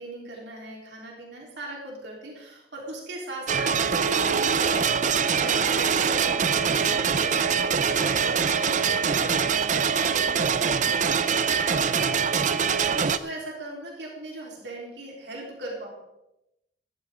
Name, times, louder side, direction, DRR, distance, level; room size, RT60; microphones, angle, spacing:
voice 1, 0.0-12.5 12.9-15.9, right 1 dB, 90° right, -2 dB, 3.9 m, -39 dB
sound 1, 3.5-13.2, right 6 dB, 45° right, 0.6 m, -23 dB
15.5 x 14.0 x 3.8 m, 0.90 s
head